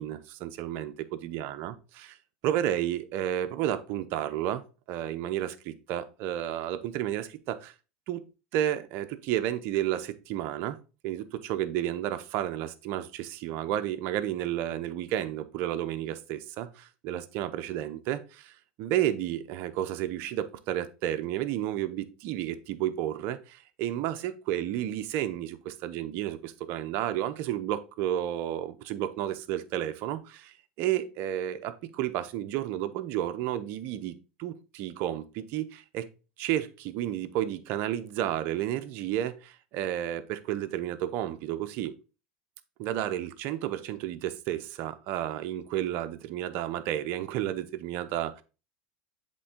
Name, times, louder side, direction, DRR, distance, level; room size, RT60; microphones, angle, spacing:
voice 1, 0.0-2.2 2.4-7.7 8.1-8.2 8.5-10.8 11.0-36.1 36.4-41.9 42.8-48.4, right 12 dB, 60° right, 0.7 m, -32 dB
7.6 x 3.8 x 3.6 m
hypercardioid pair, 100°, 4 cm